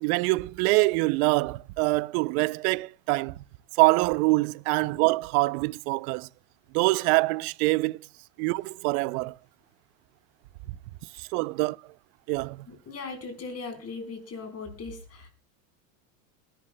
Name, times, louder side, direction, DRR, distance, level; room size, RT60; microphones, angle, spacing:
voice 1, 0.0-3.4 3.8-6.3 6.7-8.0 8.4-9.4 11.2-11.8 12.3-12.7, right 24 dB, 60° right, 0.6 m, -25 dB
voice 2, 12.7-15.3, left 4 dB, 30° left, 4.3 m, -39 dB
21.0 x 11.5 x 2.2 m
supercardioid pair, 105°, 49 cm